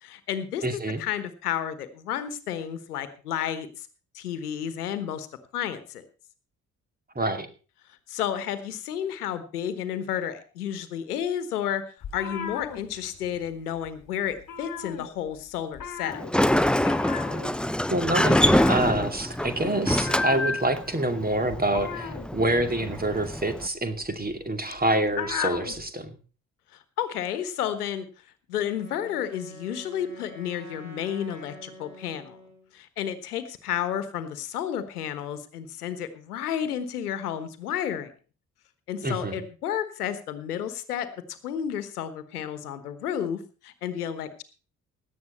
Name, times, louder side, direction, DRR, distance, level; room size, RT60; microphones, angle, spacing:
voice 1, 0.0-3.9 4.1-5.3 5.5-6.0 8.1-11.8 12.1-16.2 27.0-28.1 28.5-32.4 32.7-38.1 38.9-44.4, left 9 dB, 85° left, 13 dB, 1.3 m, -31 dB
voice 2, 0.6-1.0 7.2-7.5 17.9-26.2 39.0-39.4, right 1 dB, 20° right, 8 dB, 2.5 m, -27 dB
sound 1, 12.0-13.5 13.8-14.0 14.3-15.4 15.7-25.8, left 8 dB, 45° left, 2.0 m, -36 dB
Sliding door, 16.1-23.7, left 1 dB, ahead, 0.7 m, -25 dB
Wind instrument woodwind instrument, 28.7-32.7, left 1 dB, 40° right, 7.2 m, -46 dB
17.0 x 10.5 x 4.2 m, 0.37 s
figure-of-eight pair, 40°, 44 cm